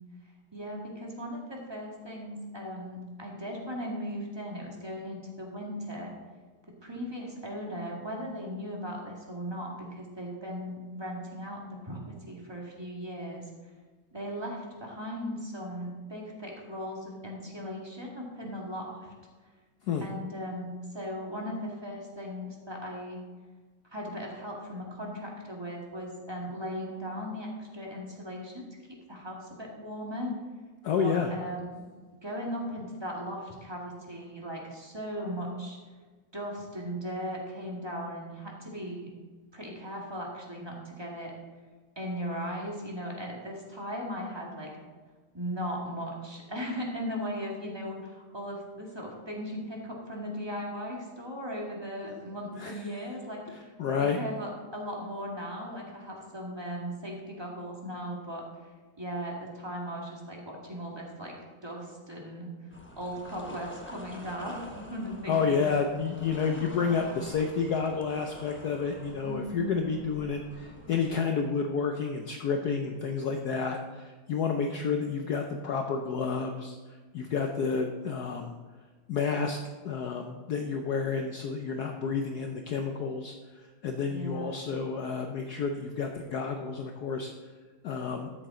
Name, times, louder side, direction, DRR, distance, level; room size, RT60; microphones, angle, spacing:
voice 1, 0.5-6.1 6.8-13.5 14.1-19.1 20.0-23.2 23.9-30.3 31.0-31.8 32.2-35.8 36.3-39.1 39.5-41.3 42.0-44.7 45.3-53.7 54.0-58.4 59.0-61.4 61.6-65.7 66.7-67.3 69.2-69.7 84.1-84.6, equal, 15° right, -2 dB, 1.7 m, -38 dB
voice 2, 30.8-31.3 52.0-52.2 52.6-52.8 53.5-54.2 65.3-78.5 79.1-79.6 79.8-87.3 87.8-88.3, left 5 dB, 65° left, 4 dB, 1.0 m, -30 dB
sound 1, 62.7-71.1, left 1 dB, 15° left, 0.4 m, -47 dB
13.0 x 7.4 x 3.8 m, 1.4 s
omnidirectional pair, 2.3 m